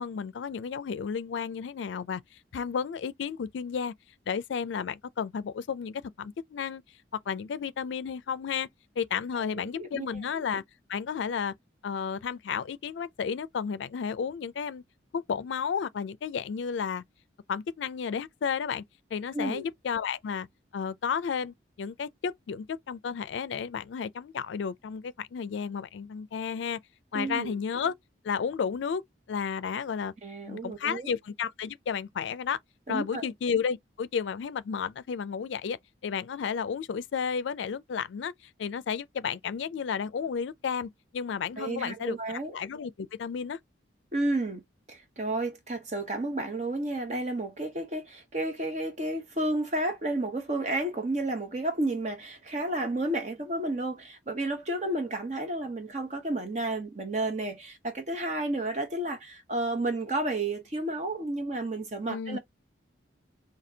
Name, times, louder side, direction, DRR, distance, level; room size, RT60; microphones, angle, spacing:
voice 1, 0.0-2.2 2.5-3.9 4.3-6.8 7.3-8.7 9.0-10.6 10.9-11.5 11.8-14.8 15.1-17.0 17.5-18.8 19.1-20.5 20.7-26.8 27.1-27.9 28.2-29.0 29.3-30.1 30.5-32.6 32.9-35.8 36.0-38.3 38.6-43.6 62.1-62.4, left 6 dB, 75° left, 0.4 m, -32 dB
voice 2, 9.3-10.2 19.3-19.7 27.1-27.6 30.2-31.1 32.9-33.3 41.6-42.5 44.1-44.6 44.9-62.4, right 2 dB, 40° right, 0.8 m, -31 dB
4.2 x 2.7 x 2.7 m
head